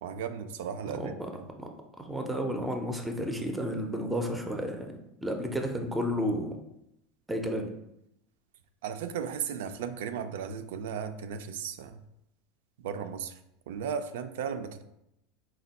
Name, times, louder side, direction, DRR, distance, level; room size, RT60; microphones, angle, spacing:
voice 1, 0.0-1.5 8.8-12.0 12.8-13.4 13.7-14.8, right 7 dB, 85° right, 8 dB, 0.3 m, -36 dB
voice 2, 2.0-4.9 5.2-6.6 7.3-7.7, equal, 5° right, 4 dB, 0.4 m, -31 dB
4.2 x 2.2 x 4.0 m, 0.82 s
supercardioid pair, 155°, 0 cm